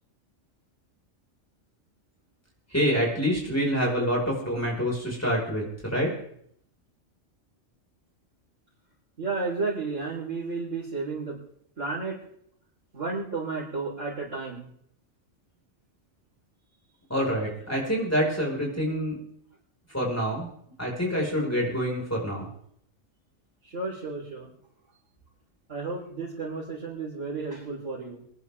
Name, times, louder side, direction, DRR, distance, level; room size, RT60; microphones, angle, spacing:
voice 1, 2.7-6.1 17.1-19.2 19.9-20.5 20.8-22.5, equal, 10° left, -3 dB, 5.2 m, -26 dB
voice 2, 9.2-11.4 11.8-12.2 12.9-14.7 23.6-24.5 25.7-28.2, right 3 dB, 80° right, -9 dB, 4.7 m, -32 dB
26.0 x 11.0 x 3.6 m, 0.68 s
omnidirectional pair, 1.3 m